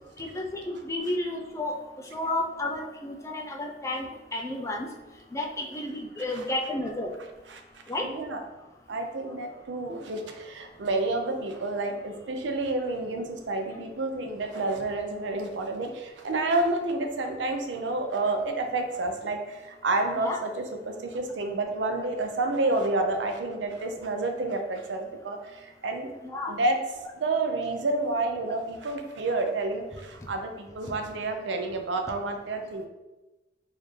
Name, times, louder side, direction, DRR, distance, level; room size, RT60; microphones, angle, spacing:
voice 1, 0.2-1.8 2.1-4.9 5.3-7.1 7.9-8.1 20.2-20.4 26.2-26.5, left 1 dB, 15° left, 1 dB, 0.4 m, -32 dB
voice 2, 8.0-8.4 8.9-26.1 26.5-26.8 27.2-32.9, right 2 dB, 85° right, 4 dB, 0.5 m, -29 dB
4.0 x 2.6 x 3.2 m, 1.1 s
head